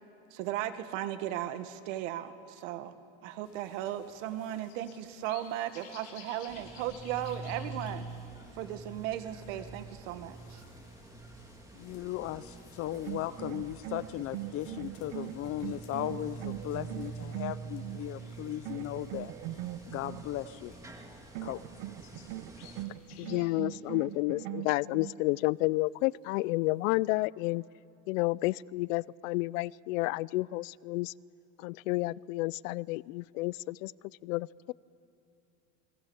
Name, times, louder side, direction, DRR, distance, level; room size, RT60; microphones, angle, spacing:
voice 1, 0.3-2.9 3.2-8.0 8.5-10.6, right 12 dB, 75° right, 9 dB, 1.8 m, -36 dB
sound 1, 3.4-23.3, left 7 dB, 55° left, 4.8 m, -58 dB
sound 2, 6.5-22.8, right 2 dB, 10° right, 1.9 m, -46 dB
voice 2, 11.7-19.3 19.9-20.9 21.4-21.6, left 13 dB, 35° left, 16 dB, 0.6 m, -37 dB
sound 3, 12.9-18.1 18.6-20.2 21.3-25.2, right 15 dB, 60° right, 0.9 m, -41 dB
voice 3, 23.2-27.6 28.1-31.1 31.6-33.9 34.2-34.7, left 21 dB, 90° left, 23 dB, 0.5 m, -31 dB
29.5 x 22.5 x 7.2 m, 2.9 s
cardioid pair, 165°, 39 cm